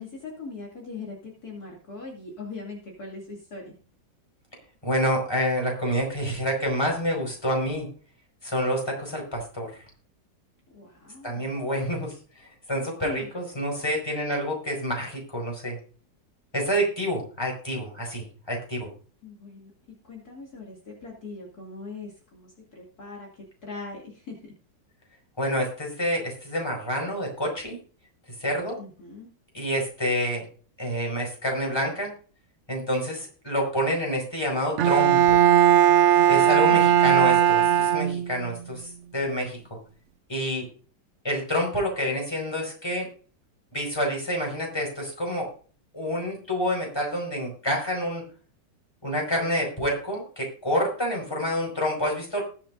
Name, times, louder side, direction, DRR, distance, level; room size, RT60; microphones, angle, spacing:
voice 1, 0.0-3.7 10.7-11.6 13.0-13.3 19.2-19.7 20.0-24.5 28.8-29.3, left 3 dB, 55° left, -2 dB, 3.0 m, -41 dB
voice 2, 4.8-7.9 8.4-9.7 11.2-12.1 12.7-15.8 16.5-18.9 25.4-27.8 28.4-28.7 29.5-30.4 30.8-32.1 32.7-35.4 36.3-39.6 40.3-40.6 41.2-43.1 43.7-45.5 45.9-48.2 49.0-52.4, equal, 15° left, 0 dB, 4.8 m, -28 dB
Bowed string instrument, 34.8-38.5, right 10 dB, 90° right, 0.6 m, -18 dB
20.0 x 7.6 x 2.5 m, 0.40 s
omnidirectional pair, 1.9 m